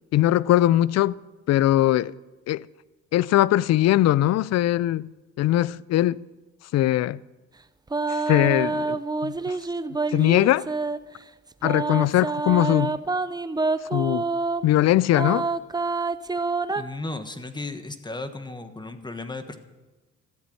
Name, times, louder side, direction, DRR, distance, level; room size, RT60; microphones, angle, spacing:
voice 1, 0.1-1.2 1.5-2.1 2.5-2.7 3.1-5.1 5.4-6.2 6.7-7.2 8.1-9.6 10.1-10.7 11.6-13.0 13.9-14.3 14.6-15.5, left 14 dB, 60° left, 0.4 m, -21 dB
sound 1, 7.9-11.0 11.6-14.7 15.1-16.8, right 3 dB, 15° right, 0.5 m, -27 dB
voice 2, 16.7-19.6, left 2 dB, 15° left, 1.3 m, -35 dB
14.5 x 8.2 x 7.9 m
cardioid pair, 90°, 30 cm